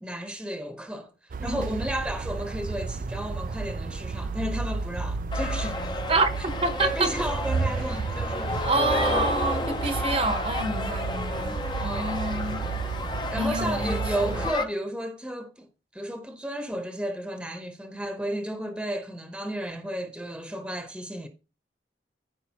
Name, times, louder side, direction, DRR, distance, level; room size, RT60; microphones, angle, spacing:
voice 1, 0.0-6.0 6.7-8.7 9.0-9.3 11.8-12.3 13.3-15.7 15.9-21.3, right 1 dB, 5° right, 0.9 m, -33 dB
sound 1, 1.3-14.5, right 4 dB, 50° right, 0.4 m, -32 dB
voice 2, 1.4-1.8 6.1-7.1 8.6-12.6 13.4-14.0 14.3-14.4, right 3 dB, 35° right, 0.9 m, -28 dB
sound 2, 5.3-14.6, left 2 dB, 25° left, 0.7 m, -32 dB
13.5 x 5.1 x 2.9 m
head